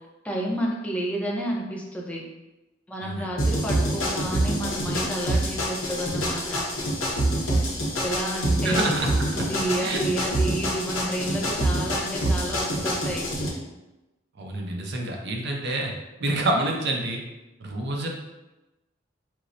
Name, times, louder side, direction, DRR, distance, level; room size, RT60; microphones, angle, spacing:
voice 1, 0.2-2.2 2.9-6.7 8.0-8.9 9.3-13.3, right 1 dB, 5° left, -3 dB, 0.5 m, -30 dB
sound 1, 3.4-13.5, right 1 dB, 90° left, 0.8 m, -26 dB
voice 2, 8.6-9.4 9.8-10.0 14.4-15.9 16.2-17.2 17.6-18.1, right 1 dB, 60° right, 1 dB, 0.5 m, -27 dB
4.4 x 2.0 x 2.5 m, 1.0 s
head